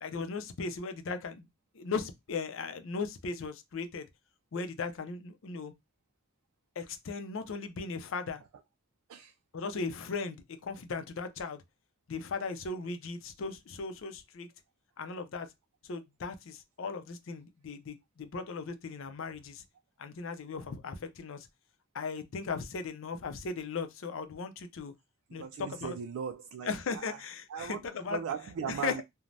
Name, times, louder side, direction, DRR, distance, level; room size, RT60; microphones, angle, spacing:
voice 1, 0.0-1.5 1.7-4.1 4.5-5.7 6.8-8.4 9.5-10.4 10.6-11.6 12.1-14.5 15.0-15.5 15.8-19.6 20.0-21.5 21.9-24.9 25.3-26.0 26.6-28.2 28.6-28.9, left 4 dB, 65° left, 0.4 m, -37 dB
voice 2, 25.3-27.2 27.5-29.0, right 7 dB, 80° right, 0.3 m, -38 dB
3.2 x 2.1 x 2.5 m
head